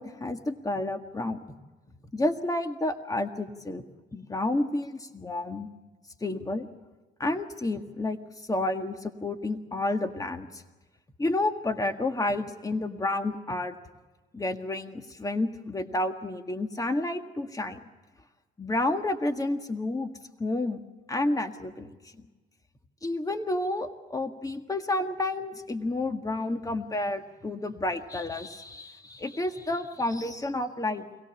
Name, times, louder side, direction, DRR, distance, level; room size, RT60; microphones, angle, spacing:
voice 1, 0.0-1.4 2.1-3.8 4.1-5.7 6.2-6.7 7.2-8.2 8.5-10.6 11.2-13.8 14.3-17.8 18.6-20.1 20.4-20.8 21.1-22.3 23.0-31.0, left 2 dB, 15° left, 6 dB, 1.8 m, -30 dB
25.0 x 17.5 x 7.2 m, 1.2 s
cardioid pair, 90°, 20 cm